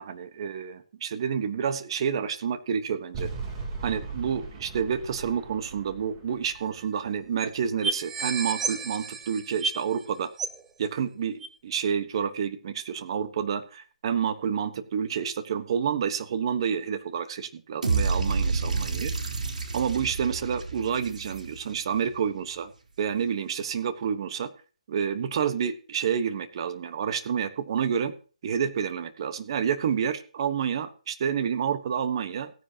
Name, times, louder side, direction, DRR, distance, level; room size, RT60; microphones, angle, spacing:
voice 1, 0.0-3.3 3.8-10.3 10.8-19.1 19.7-22.7 23.0-24.5 24.9-28.1 28.4-32.5, right 7 dB, 40° right, 11 dB, 1.2 m, -29 dB
sound 1, 3.1-8.3, right 4 dB, 25° right, 3.2 m, -39 dB
sound 2, 6.5-6.6 6.8-6.9 7.4-7.5 7.8-10.0 10.4-10.7 11.4-11.5, right 4 dB, 10° right, 0.6 m, -31 dB
sound 3, 17.8-21.9, right 4 dB, 90° right, 3.7 m, -29 dB
16.5 x 9.9 x 2.9 m, 0.37 s
hypercardioid pair, 165°, 4 cm